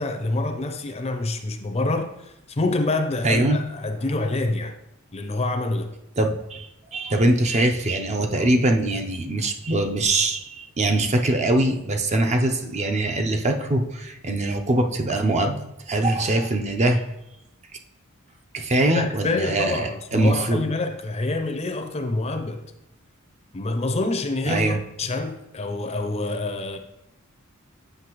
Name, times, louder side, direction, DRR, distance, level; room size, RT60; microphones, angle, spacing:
voice 1, 0.0-4.8 5.1-5.9 18.9-22.6 23.5-26.8, left 2 dB, 30° left, 0.5 m, -26 dB
voice 2, 3.2-3.6 6.2-15.6 15.9-17.0 18.5-20.6 24.5-24.8, right 1 dB, 30° right, 0.5 m, -22 dB
7.9 x 5.5 x 3.0 m
head